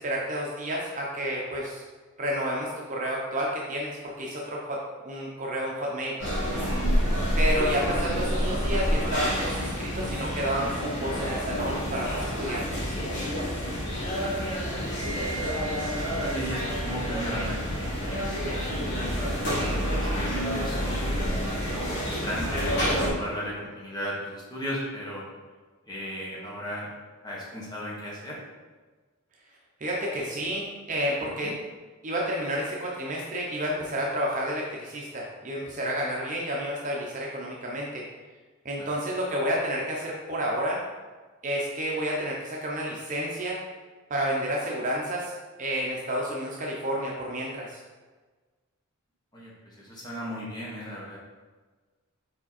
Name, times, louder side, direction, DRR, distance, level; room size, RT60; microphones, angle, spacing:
voice 1, 0.0-1.8 2.2-6.2 7.4-12.9 29.8-31.5 32.0-38.0 38.6-40.8 41.4-43.6 44.1-47.8, equal, 35° right, -3 dB, 0.8 m, -30 dB
Cofee shop Ambience, 6.2-23.1, equal, 55° left, 1.8 m, -28 dB
voice 2, 14.1-14.6 15.5-21.2 21.7-25.2 25.9-26.9 27.2-28.4 31.4-31.5 38.8-38.9 49.3-51.2, equal, 20° left, -5 dB, 1.4 m, -37 dB
5.1 x 4.4 x 4.2 m, 1.4 s
head